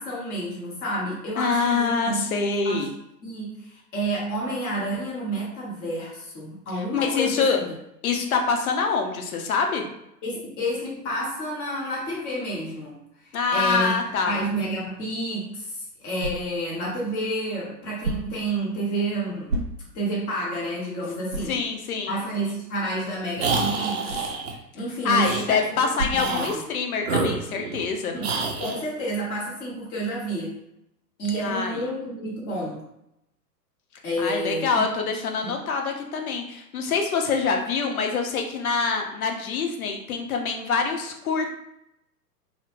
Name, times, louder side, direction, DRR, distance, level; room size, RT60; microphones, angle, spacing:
voice 1, 0.0-2.2 2.6-2.9 3.2-7.7 10.2-13.0 13.2-13.9 14.3-19.6 19.9-21.6 22.1-24.3 24.7-26.6 28.1-30.6 31.2-32.8 34.0-34.8 35.4-35.5, right 1 dB, 20° left, -5 dB, 0.7 m, -30 dB
voice 2, 1.4-2.9 6.7-7.6 8.0-9.8 13.3-14.4 21.5-22.1 25.0-28.1 31.4-31.8 34.2-41.5, left 5 dB, 60° left, 3 dB, 0.6 m, -25 dB
sound 1, 15.3-27.1, right 2 dB, 85° right, 0.6 m, -37 dB
sound 2, 23.4-24.5 25.2-25.5 26.1-26.6 27.0-27.9 28.2-28.8, right 4 dB, 40° right, 0.5 m, -28 dB
2.1 x 2.0 x 3.0 m, 0.82 s
figure-of-eight pair, 110°, 49 cm